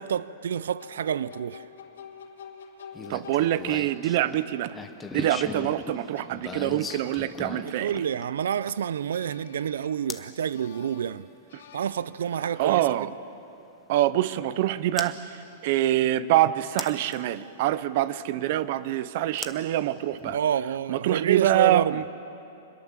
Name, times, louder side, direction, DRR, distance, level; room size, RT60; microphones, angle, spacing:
voice 1, 0.0-1.6 7.8-11.3 11.7-12.9 20.3-22.0, right 9 dB, 90° right, 0.5 m, -28 dB
sound 1, 0.7-4.3 5.9-8.6 9.1-10.2 10.5-13.1, left 6 dB, 75° left, 3.6 m, -48 dB
sound 2, 2.9-9.0 10.1-10.3 12.2-12.3 15.0-15.1 16.8-17.2 19.4-20.4, left 4 dB, 10° left, 0.8 m, -38 dB
voice 2, 3.1-4.8 5.1-7.9 11.5-11.6 12.6-13.1 13.9-20.4 20.9-22.0, right 13 dB, 40° right, 0.6 m, -25 dB
26.0 x 21.5 x 7.5 m
supercardioid pair, 180°, 0 cm